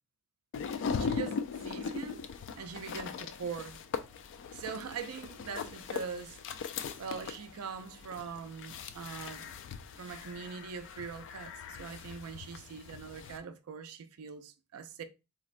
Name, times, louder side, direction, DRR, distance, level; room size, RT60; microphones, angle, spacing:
sound 1, 0.5-13.4, left 5 dB, 55° left, 0.3 m, -40 dB
voice 1, 1.0-2.2 2.6-3.8 4.5-6.4 7.0-9.5 9.9-15.0, right 6 dB, 80° right, 0.4 m, -42 dB
3.8 x 2.1 x 2.5 m
head